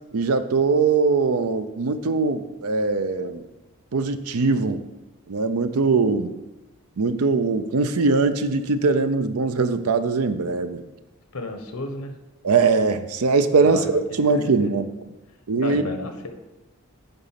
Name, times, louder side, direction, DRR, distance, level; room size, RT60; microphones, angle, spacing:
voice 1, 0.1-3.4 3.9-4.8 5.3-6.3 7.0-10.8 12.4-14.8 15.5-15.8, right 4 dB, 85° right, 11 dB, 0.6 m, -21 dB
voice 2, 11.3-12.1 13.6-14.7 15.5-16.3, left 2 dB, 85° left, 6 dB, 1.1 m, -33 dB
8.9 x 4.1 x 5.8 m, 1.0 s
head